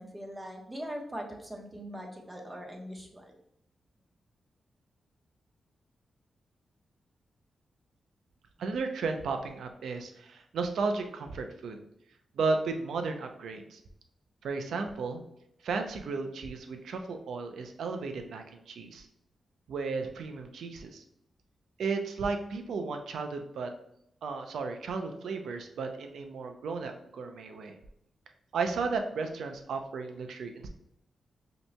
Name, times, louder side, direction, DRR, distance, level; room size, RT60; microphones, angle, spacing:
voice 1, 0.0-3.3, equal, 20° right, 0 dB, 1.1 m, -41 dB
voice 2, 8.6-11.8 12.4-13.8 14.4-15.2 15.6-19.1 19.7-21.0 21.8-23.7 24.2-27.8 28.5-30.7, right 4 dB, 85° right, 5 dB, 0.5 m, -34 dB
5.2 x 2.9 x 2.2 m, 0.76 s
cardioid pair, 60°, 0 cm